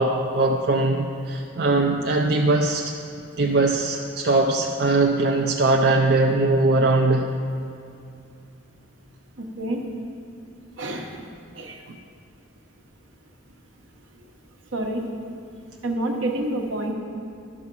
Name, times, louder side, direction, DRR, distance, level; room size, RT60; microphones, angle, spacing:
voice 1, 0.0-2.9 3.4-7.3 11.9-12.0, right 2 dB, 55° right, 2 dB, 0.5 m, -21 dB
voice 2, 9.4-9.9 10.8-11.2 11.6-11.8 14.7-15.1 15.8-16.9, right 1 dB, 75° right, 2 dB, 1.1 m, -28 dB
12.0 x 6.2 x 5.4 m, 2.5 s
head